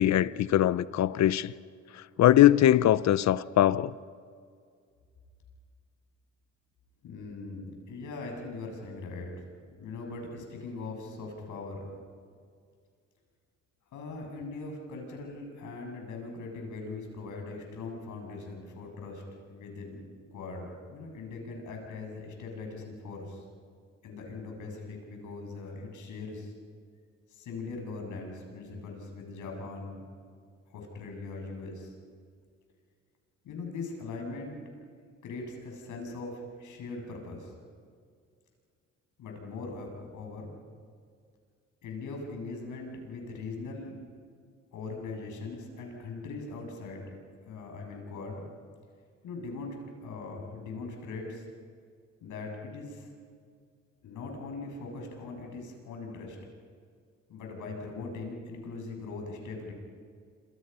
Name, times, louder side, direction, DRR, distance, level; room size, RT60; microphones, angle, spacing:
voice 1, 0.0-1.5 2.2-3.9, left 12 dB, 65° left, 0.8 m, -21 dB
voice 2, 7.0-12.0 13.9-19.2 19.5-20.0 20.3-23.4 24.0-26.5 27.3-30.1 30.7-31.9 33.4-34.6 35.2-37.5 39.2-40.5 41.8-44.0 44.7-47.1 47.5-48.5 49.2-51.5 52.2-53.1 54.0-56.4 57.3-59.7, left 3 dB, 80° left, 7.6 m, -40 dB
28.0 x 27.5 x 5.7 m
cardioid pair, 90°, 30 cm